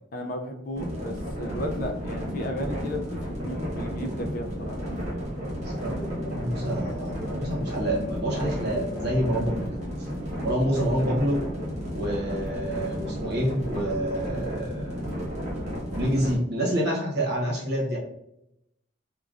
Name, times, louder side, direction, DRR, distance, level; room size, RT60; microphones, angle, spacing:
voice 1, 0.1-4.8, left 1 dB, 45° left, 3 dB, 0.4 m, -34 dB
sound 1, 0.7-16.4, equal, 35° right, 1.2 m, -33 dB
voice 2, 5.6-9.7 10.4-11.4 11.9-15.0 15.9-18.0, equal, 55° right, -2 dB, 0.9 m, -27 dB
3.7 x 2.2 x 2.4 m, 0.80 s
head